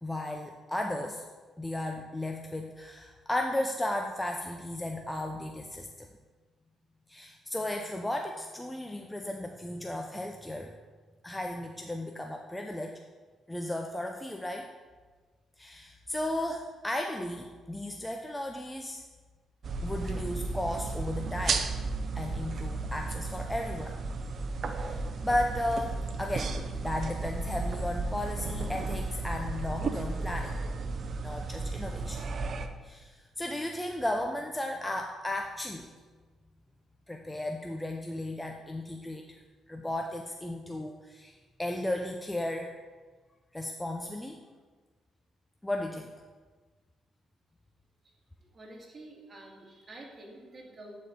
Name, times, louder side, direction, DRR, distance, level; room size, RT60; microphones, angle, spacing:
voice 1, 0.0-1.2 1.6-6.1 7.1-10.7 11.2-13.0 13.5-14.7 15.6-19.0 19.8-21.7 22.2-24.0 24.7-26.5 26.8-30.6 31.2-32.4 32.8-35.9 37.1-39.4 39.7-42.7 43.5-44.4 45.6-46.1, left 1 dB, 10° left, 2 dB, 0.5 m, -35 dB
sound 1, 19.6-32.7, right 3 dB, 50° right, 0.5 m, -34 dB
voice 2, 48.5-51.0, right 1 dB, 35° right, -3 dB, 1.9 m, -48 dB
11.0 x 4.2 x 3.7 m, 1.4 s
cardioid pair, 90°, 0 cm